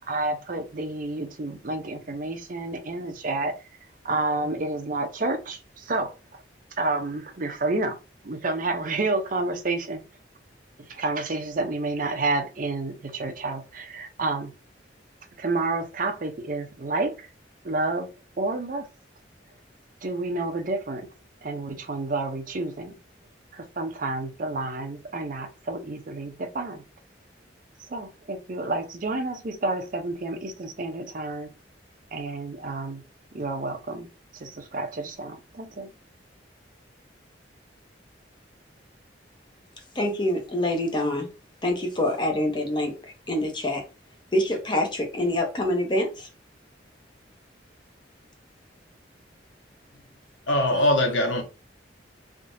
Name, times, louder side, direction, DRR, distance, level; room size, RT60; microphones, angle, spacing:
voice 1, 0.0-3.5 4.0-6.1 6.8-8.0 8.2-10.0 10.9-14.5 15.4-17.3 17.6-18.9 20.0-21.1 21.4-23.0 23.5-26.8 27.9-31.5 32.1-33.0 33.3-34.1 34.4-35.9, right 2 dB, 45° right, 0.6 m, -29 dB
voice 2, 39.9-41.3 41.6-43.8 44.3-46.3 50.7-50.8, left 1 dB, 25° left, 0.7 m, -26 dB
voice 3, 50.5-51.4, left 1 dB, 80° left, 1.1 m, -21 dB
3.5 x 2.7 x 2.5 m
head